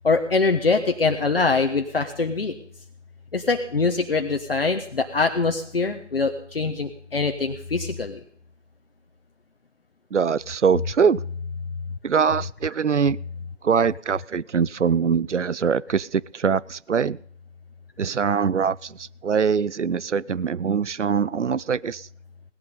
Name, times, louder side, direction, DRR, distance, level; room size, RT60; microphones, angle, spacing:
voice 1, 0.0-2.6 3.3-8.2, left 4 dB, 50° left, 5 dB, 1.2 m, -23 dB
voice 2, 10.1-11.2 12.0-13.2 13.6-17.2 18.0-22.1, right 6 dB, 80° right, 22 dB, 0.6 m, -23 dB
17.5 x 11.0 x 5.4 m, 0.62 s
figure-of-eight pair, 155°, 36 cm